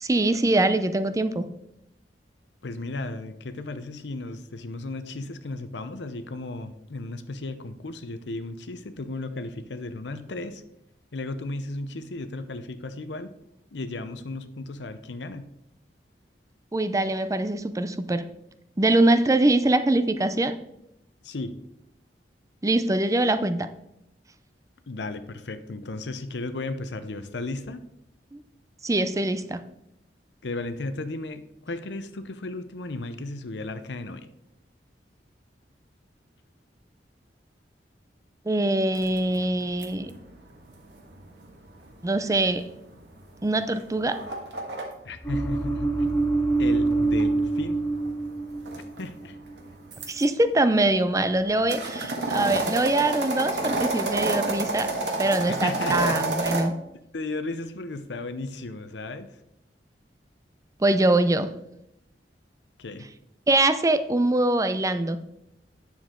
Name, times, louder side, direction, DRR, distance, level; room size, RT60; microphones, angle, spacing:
voice 1, 0.0-1.5 16.7-18.2 18.8-20.5 22.6-23.7 28.8-29.6 38.5-40.1 42.0-42.7 43.4-44.2 50.1-54.9 55.2-56.7 60.8-61.5 63.5-65.2, right 2 dB, 20° right, 11 dB, 0.5 m, -23 dB
voice 2, 2.6-10.6 11.1-13.3 13.7-15.5 21.2-21.6 24.9-27.8 30.4-34.3 45.0-46.3 46.6-47.8 49.0-49.4 55.5-56.6 57.1-59.3 62.8-63.1, left 2 dB, 85° left, 11 dB, 0.7 m, -35 dB
sound 1, 38.9-44.8 46.1-50.2 50.8-56.6, right 2 dB, 75° right, 1.7 m, -30 dB
sound 2, 45.2-48.7 49.0-49.3, right 3 dB, 15° left, 1.3 m, -25 dB
9.0 x 7.1 x 3.7 m, 0.82 s
head